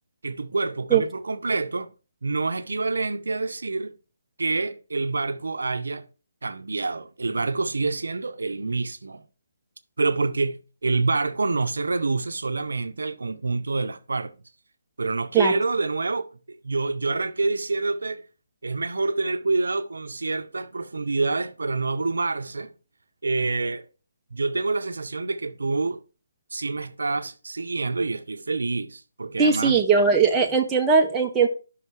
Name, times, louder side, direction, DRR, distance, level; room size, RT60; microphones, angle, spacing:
voice 1, 0.2-1.9 2.2-3.9 4.4-6.1 6.4-9.2 10.0-14.3 15.0-18.2 18.6-22.7 23.2-23.9 24.3-26.0 26.5-29.8, right 3 dB, 80° right, 0.6 m, -27 dB
voice 2, 29.4-31.5, right 5 dB, 10° right, 0.8 m, -19 dB
5.6 x 5.5 x 4.8 m
hypercardioid pair, 160°, 0 cm